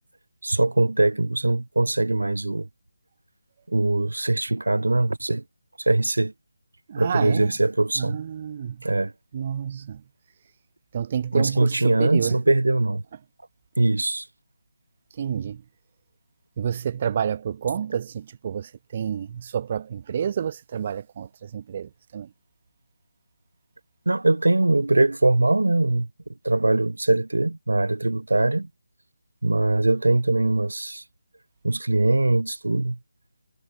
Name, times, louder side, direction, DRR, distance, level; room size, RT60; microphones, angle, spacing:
voice 1, 0.4-2.7 3.7-5.4 5.8-6.3 7.0-8.2 8.8-9.1 11.3-13.0 13.8-14.3 24.0-26.1 26.4-28.7 29.4-31.0 31.6-33.0, right 2 dB, 65° right, 6.6 m, -22 dB
voice 2, 6.9-7.5 8.0-8.8 9.3-10.0 10.9-12.3 15.2-15.6 16.6-22.3, right 8 dB, 30° right, 4.7 m, -29 dB
figure-of-eight pair, 155°, 0 cm